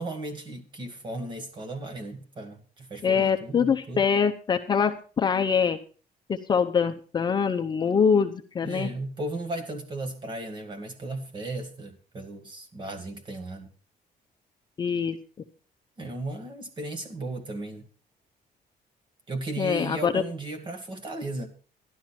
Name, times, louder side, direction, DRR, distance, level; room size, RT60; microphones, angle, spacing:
voice 1, 0.0-4.0 8.6-13.7 16.0-17.9 19.3-21.5, right 2 dB, 30° right, 6 dB, 1.8 m, -35 dB
voice 2, 3.0-5.8 6.3-8.9 14.8-15.2 19.6-20.2, left 6 dB, 30° left, 5 dB, 0.7 m, -24 dB
12.0 x 12.0 x 4.3 m, 0.38 s
cardioid pair, 165°, 16 cm